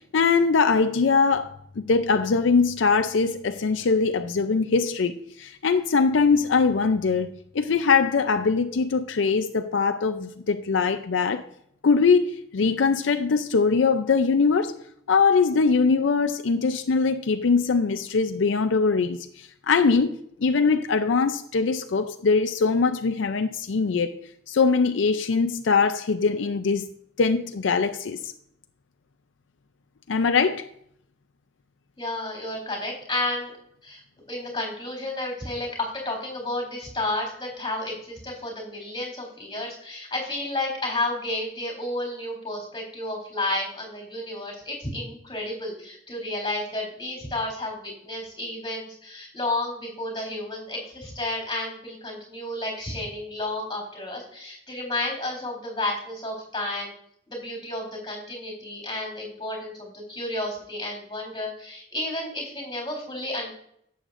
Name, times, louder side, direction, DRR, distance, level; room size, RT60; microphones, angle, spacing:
voice 1, 0.1-1.5 1.8-11.4 11.8-14.7 15.1-24.1 24.5-26.9 27.2-28.3 30.1-30.7, left 4 dB, 75° left, 0.5 m, -22 dB
voice 2, 32.0-33.5 33.8-34.0 34.3-56.9 57.3-63.5, left 2 dB, 20° left, 3.8 m, -31 dB
11.0 x 7.9 x 2.5 m
head